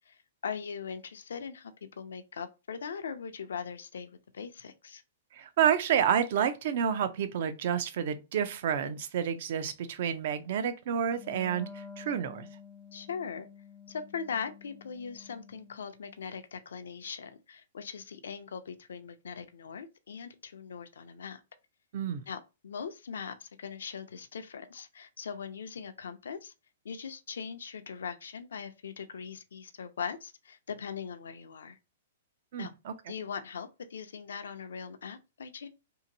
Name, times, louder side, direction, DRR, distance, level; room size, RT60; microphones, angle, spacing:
voice 1, 0.1-5.0 12.9-13.5 13.9-21.4 22.3-26.5 26.8-31.8 32.6-32.7 33.1-35.7, left 6 dB, 85° left, 0.4 m, -40 dB
voice 2, 5.3-12.5 21.9-22.2 32.5-33.1, right 8 dB, 60° right, 0.4 m, -29 dB
Wind instrument woodwind instrument, 11.1-16.2, left 6 dB, 25° left, 0.4 m, -50 dB
2.8 x 2.5 x 2.7 m
hypercardioid pair, 140°, 0 cm